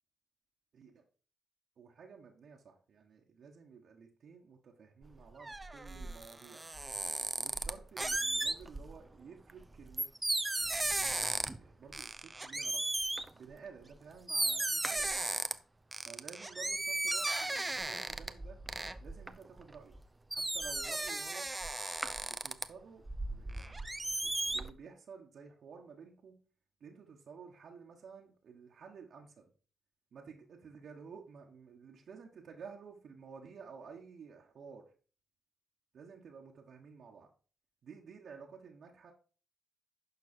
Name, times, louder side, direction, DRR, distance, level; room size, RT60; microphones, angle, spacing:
voice 1, 1.8-6.7 7.4-10.1 10.6-12.8 13.3-15.1 16.0-18.6 19.0-19.9 20.3-21.5 22.2-23.9 24.2-26.3 26.8-29.4 30.1-34.9 35.9-37.3 37.8-39.1, right 6 dB, 60° right, -1 dB, 1.6 m, -53 dB
sound 1, 5.0-9.0 9.5-11.7 11.9-13.3 13.9-14.0 14.3-15.5 15.9-20.0 20.3-22.6 23.1-24.7, right 2 dB, 20° right, 0.8 m, -35 dB
11.5 x 4.7 x 4.5 m, 0.38 s
hypercardioid pair, 40°, 0 cm